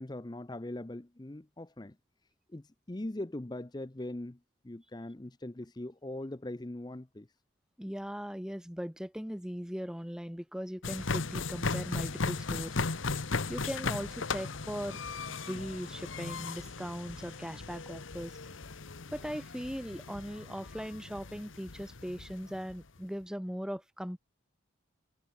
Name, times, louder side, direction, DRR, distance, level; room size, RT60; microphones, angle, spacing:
voice 1, 0.0-2.0 2.5-4.4 4.6-7.3, left 1 dB, 20° left, 0.6 m, -41 dB
voice 2, 7.8-12.8 13.5-15.0 15.3-18.3 19.1-24.2, equal, 5° right, 0.9 m, -39 dB
sound 1, 10.8-22.8, left 4 dB, 80° left, 1.2 m, -37 dB
sound 2, 12.0-18.1, left 2 dB, 40° left, 7.2 m, -57 dB
head